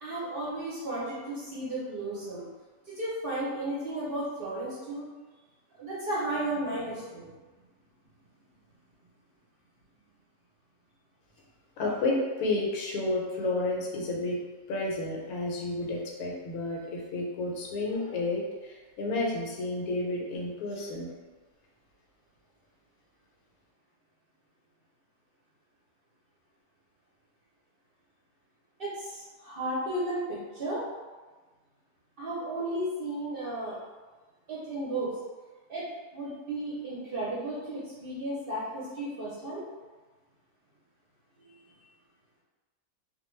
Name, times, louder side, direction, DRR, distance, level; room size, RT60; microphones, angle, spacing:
voice 1, 0.0-2.4 2.9-5.1 5.8-7.3 20.7-20.9 28.8-30.8 32.2-33.8 34.5-35.1 35.7-35.8 36.1-39.6 41.4-41.5, right 1 dB, 50° right, -8 dB, 0.7 m, -34 dB
voice 2, 11.8-14.4 14.7-21.1, left 2 dB, 80° left, -2 dB, 1.1 m, -31 dB
2.3 x 2.2 x 3.1 m, 1.3 s
omnidirectional pair, 1.5 m